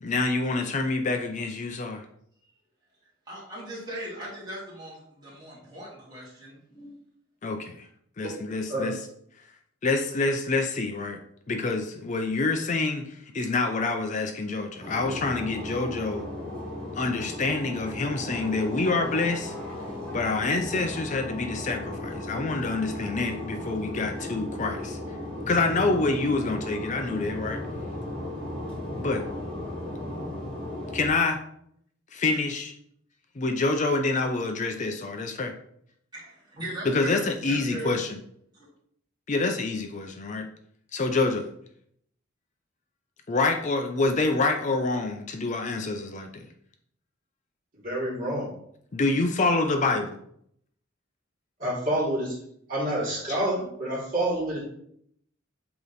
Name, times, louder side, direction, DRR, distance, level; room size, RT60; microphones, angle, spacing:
voice 1, 0.0-2.0 7.4-7.9 8.2-9.0 9.8-11.2 11.5-16.3 17.0-19.5 20.1-25.0 25.5-27.6 29.0-29.2 30.9-31.4 32.1-32.7 33.4-35.5 36.9-38.2 39.3-40.5 40.9-41.5 43.3-46.5 48.9-50.2 53.3-53.4, left 3 dB, 35° left, 5 dB, 0.5 m, -27 dB
voice 2, 3.3-7.0 36.1-38.0, right 1 dB, 20° right, -6 dB, 2.3 m, -39 dB
sound 1, 14.8-31.1, left 1 dB, 5° left, 1.7 m, -36 dB
voice 3, 47.8-48.5 51.6-52.4 52.7-54.6, right 1 dB, 40° right, -6 dB, 2.5 m, -28 dB
8.1 x 2.9 x 4.0 m, 0.69 s
head